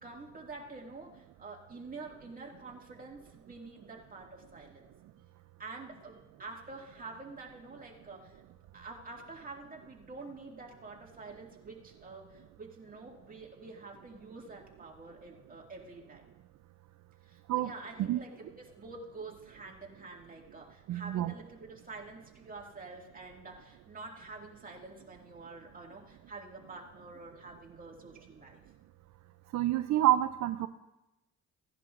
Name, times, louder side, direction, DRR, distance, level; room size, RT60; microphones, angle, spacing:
voice 1, 0.0-4.9 5.6-8.3 8.7-16.3 17.2-28.6, right 3 dB, 30° right, -1 dB, 2.1 m, -47 dB
voice 2, 20.9-21.3 29.5-30.7, right 13 dB, 65° right, 11 dB, 0.5 m, -28 dB
16.5 x 10.5 x 2.5 m, 0.99 s
cardioid pair, 90°, 30 cm